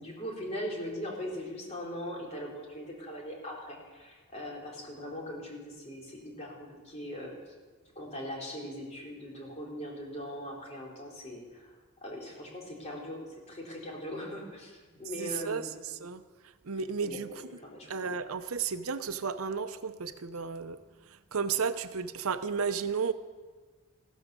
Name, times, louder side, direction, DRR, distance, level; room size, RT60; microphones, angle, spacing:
voice 1, 0.0-7.5 8.0-11.7 12.0-15.7 17.0-17.9, equal, 30° left, -2 dB, 3.6 m, -40 dB
voice 2, 15.2-15.6 16.0-16.2 16.6-17.3 17.9-20.8 21.3-23.1, right 6 dB, 90° right, 11 dB, 0.8 m, -33 dB
15.0 x 13.0 x 6.7 m, 1.4 s
head